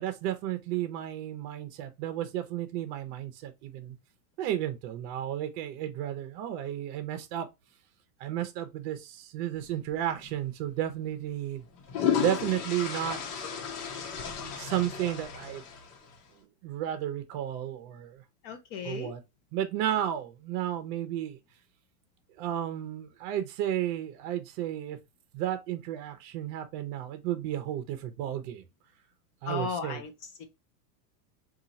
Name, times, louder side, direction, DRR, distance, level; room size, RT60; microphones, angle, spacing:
voice 1, 0.0-3.9 4.4-7.5 8.2-11.6 12.2-13.2 14.4-15.6 16.6-18.2 18.8-19.2 19.5-21.4 22.4-25.0 25.3-28.6 29.4-30.0, right 11 dB, 45° right, 0.7 m, -33 dB
sound 1, 10.2-10.4 11.6-16.2, left 8 dB, 70° left, 1.0 m, -33 dB
voice 2, 18.4-19.1 29.5-30.1 30.4-30.5, left 6 dB, 30° left, 0.6 m, -35 dB
2.9 x 2.4 x 3.9 m
supercardioid pair, 170°, 47 cm